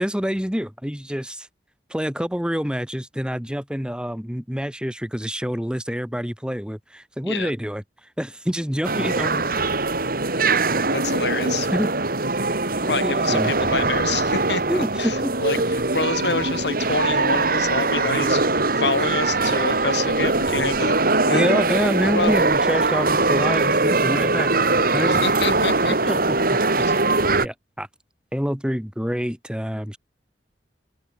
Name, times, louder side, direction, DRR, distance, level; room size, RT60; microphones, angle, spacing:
voice 1, 0.0-1.5 1.9-7.8 8.2-9.5 11.7-11.9 12.9-13.5 14.7-15.3 21.3-24.5 24.9-25.2 25.9-26.4 26.8-26.9 27.4-27.9 28.3-30.0, equal, 5° right, 2.2 m, -26 dB
sound 1, 8.8-27.5, right 3 dB, 55° right, 4.6 m, -21 dB
voice 2, 10.9-11.7 12.9-15.6 15.9-18.4 18.7-21.0 21.3-21.5 22.2-22.3 25.1-26.2 26.8-27.0, left 4 dB, 75° left, 2.8 m, -27 dB
open air
head